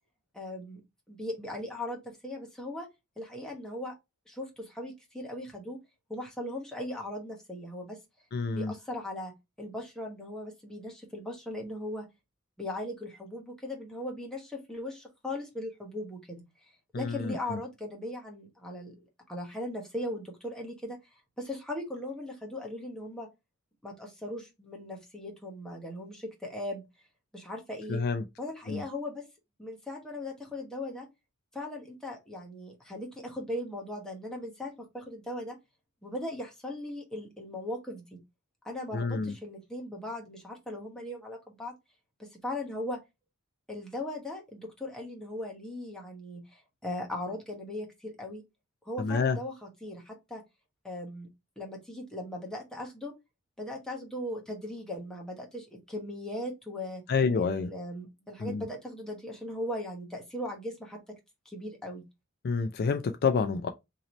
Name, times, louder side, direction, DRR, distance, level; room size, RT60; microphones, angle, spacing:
voice 1, 0.3-0.8 1.1-2.9 3.2-4.0 4.3-5.8 6.1-8.0 8.5-12.1 12.6-16.4 16.9-21.0 21.4-23.3 23.8-26.8 27.3-28.0 28.4-29.3 29.6-31.1 31.5-35.6 36.0-38.2 38.6-41.7 42.2-43.0 43.7-48.4 48.8-50.4 50.8-51.3 51.6-53.1 53.6-57.0 57.4-61.0 61.4-62.0, left 1 dB, 5° left, 1.0 m, -38 dB
voice 2, 8.3-8.7 16.9-17.6 27.9-28.2 28.7-28.8 38.9-39.3 49.0-49.4 57.1-57.7 58.4-58.6 62.4-63.7, left 5 dB, 45° left, 0.4 m, -28 dB
3.0 x 2.8 x 3.9 m
head